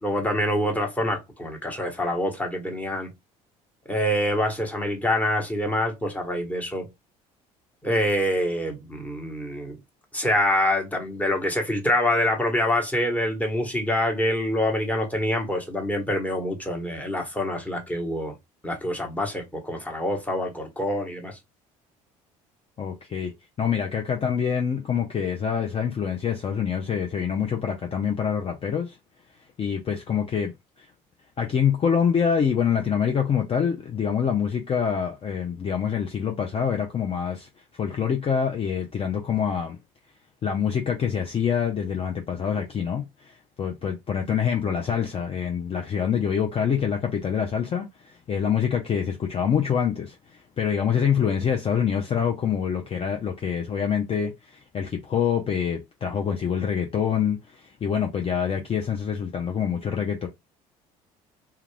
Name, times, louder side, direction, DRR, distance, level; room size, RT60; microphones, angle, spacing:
voice 1, 0.0-3.1 3.9-6.9 7.8-9.8 10.1-18.3 18.6-21.4, left 1 dB, 10° left, 1.1 m, -26 dB
voice 2, 22.8-23.3 23.6-28.9 29.6-30.5 31.4-37.5 37.8-39.8 40.4-50.2 50.6-60.3, left 7 dB, 35° left, 0.6 m, -25 dB
2.3 x 2.3 x 3.2 m
hypercardioid pair, 65°, 17 cm